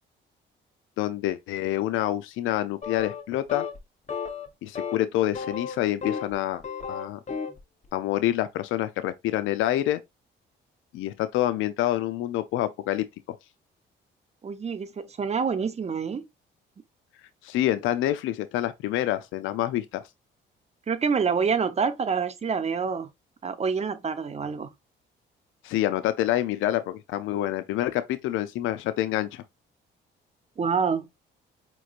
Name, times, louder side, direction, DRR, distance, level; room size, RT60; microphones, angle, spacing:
voice 1, 1.0-3.7 4.6-6.6 6.9-7.2 7.9-10.0 10.9-13.4 17.4-20.0 25.6-29.4, left 13 dB, 90° left, 0.4 m, -27 dB
sound 1, 2.8-3.2 3.5-3.8 4.1-4.5 4.7-5.0 5.3-6.3 6.6-7.6, left 6 dB, 35° left, 1.0 m, -33 dB
voice 2, 14.4-16.2 20.9-23.1 23.4-24.7 30.6-31.1, right 6 dB, 35° right, 0.7 m, -27 dB
5.0 x 3.0 x 2.4 m
cardioid pair, 90°, 20 cm